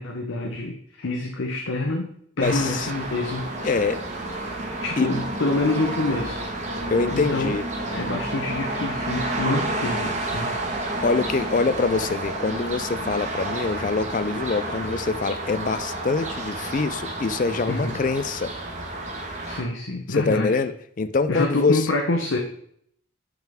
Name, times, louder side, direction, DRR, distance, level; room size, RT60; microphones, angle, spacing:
voice 1, 0.0-3.9 4.8-6.5 7.1-7.6 7.9-10.5 17.7-18.0 19.5-20.6 21.3-22.4, left 2 dB, 90° left, 2 dB, 0.9 m, -27 dB
voice 2, 2.4-2.9 3.6-4.0 5.0-5.1 6.9-7.7 11.0-18.5 20.1-20.7 21.0-21.9, left 4 dB, 40° left, 13 dB, 0.4 m, -24 dB
sound 1, 2.4-19.6, right 2 dB, 35° right, 1.2 m, -30 dB
8.8 x 5.9 x 3.5 m, 0.67 s
head